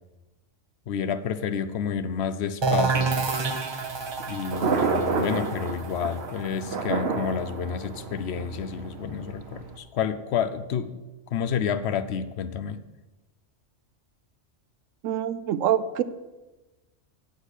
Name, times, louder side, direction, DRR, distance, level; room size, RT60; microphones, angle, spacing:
voice 1, 0.9-3.3 4.3-11.0 11.3-12.8, left 7 dB, 65° left, 12 dB, 0.9 m, -30 dB
sound 1, 2.6-8.2, right 4 dB, 35° right, 0.4 m, -29 dB
Thunder, 3.7-9.8, right 4 dB, 55° right, 1.2 m, -30 dB
voice 2, 15.0-16.0, right 10 dB, 90° right, 13 dB, 1.0 m, -25 dB
8.4 x 6.7 x 8.1 m, 1.1 s
omnidirectional pair, 1.3 m